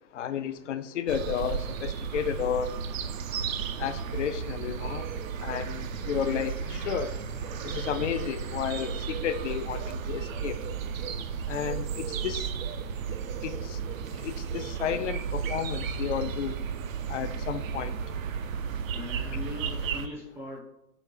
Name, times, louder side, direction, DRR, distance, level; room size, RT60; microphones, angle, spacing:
voice 1, 0.1-2.7 3.8-5.0 5.4-7.2 7.6-10.6 11.5-12.5 13.4-13.8 14.2-16.6 17.1-18.0, left 8 dB, 50° left, 11 dB, 0.5 m, -32 dB
sound 1, 1.1-20.1, right 7 dB, 55° right, 0.5 m, -34 dB
voice 2, 18.9-20.6, left 2 dB, 5° right, -3 dB, 0.5 m, -40 dB
5.2 x 3.5 x 5.6 m, 0.84 s
hypercardioid pair, 145°, 50 cm